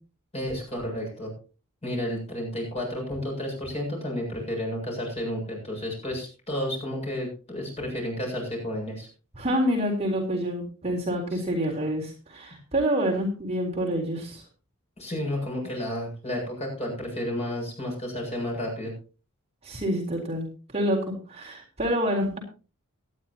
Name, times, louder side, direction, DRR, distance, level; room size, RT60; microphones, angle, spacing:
voice 1, 0.3-1.3 1.8-9.1 11.3-11.4 15.0-18.9, left 1 dB, 30° left, 0 dB, 7.5 m, -31 dB
voice 2, 9.4-14.4 19.6-20.5 20.7-22.4, equal, 30° right, -1 dB, 3.8 m, -27 dB
18.0 x 12.0 x 2.9 m, 0.34 s
head